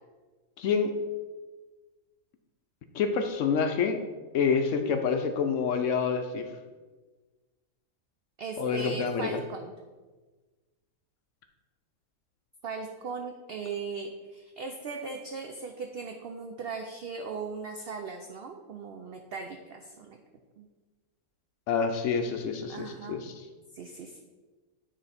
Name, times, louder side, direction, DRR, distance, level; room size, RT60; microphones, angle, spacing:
voice 1, 0.6-0.9 2.9-4.0 4.3-6.5 8.6-9.4 21.7-23.3, left 6 dB, 70° left, 6 dB, 0.8 m, -27 dB
voice 2, 8.4-9.7 12.6-20.2 20.6-20.7 22.7-23.2 23.7-24.2, right 5 dB, 85° right, 3 dB, 0.5 m, -38 dB
9.0 x 3.1 x 4.1 m, 1.3 s
omnidirectional pair, 1.6 m